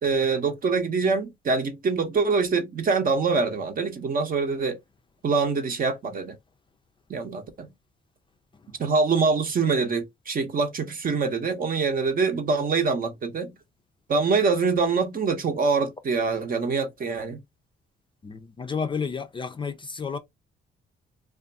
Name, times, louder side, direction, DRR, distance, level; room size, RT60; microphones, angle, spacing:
voice 1, 0.0-4.8 5.2-6.4 7.1-7.7 8.8-13.5 14.1-17.4, right 4 dB, 45° right, 0.8 m, -24 dB
voice 2, 18.3-20.2, left 5 dB, 25° left, 0.4 m, -31 dB
2.5 x 2.3 x 2.5 m
cardioid pair, 90°, 20 cm